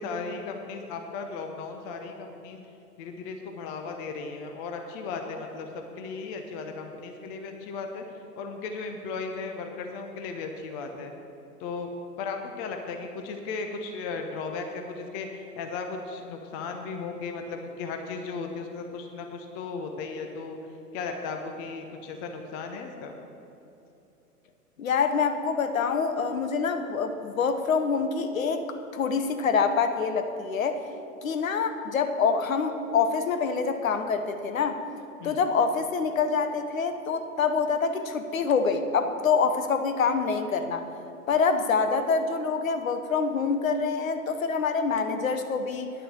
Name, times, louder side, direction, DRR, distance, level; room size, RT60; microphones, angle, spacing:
voice 1, 0.0-2.6 3.0-8.0 8.4-11.1 11.6-11.9 12.2-20.6 20.9-23.1 35.2-35.4, left 4 dB, 20° left, 4 dB, 0.6 m, -36 dB
voice 2, 24.8-28.7 28.9-30.8 31.2-34.8 35.2-40.8 41.3-45.9, left 5 dB, 60° left, 8 dB, 1.0 m, -26 dB
10.0 x 6.8 x 7.4 m, 2.9 s
figure-of-eight pair, 105°, 47 cm